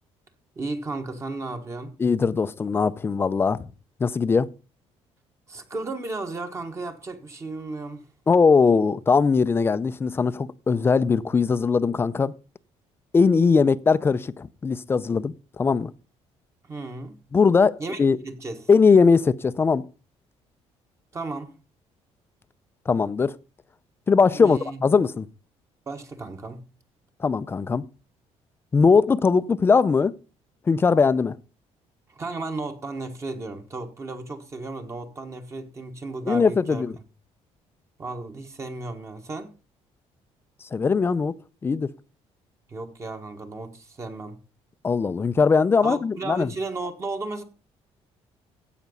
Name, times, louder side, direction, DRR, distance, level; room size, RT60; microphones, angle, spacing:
voice 1, 0.6-1.9 5.5-8.1 16.6-17.2 17.8-18.7 21.1-21.5 24.3-24.8 25.9-26.6 32.1-36.8 38.0-39.5 42.7-44.4 45.8-47.4, right 3 dB, 25° right, 1.2 m, -34 dB
voice 2, 2.0-3.7 4.0-4.5 8.3-12.3 13.1-15.9 17.3-18.2 18.7-19.8 22.9-23.4 24.1-25.3 27.2-27.9 28.7-30.1 30.7-31.4 36.3-36.9 40.7-41.3 41.6-41.9 44.8-46.5, left 5 dB, 20° left, 0.4 m, -20 dB
15.5 x 5.9 x 5.3 m
cardioid pair, 165°, 12 cm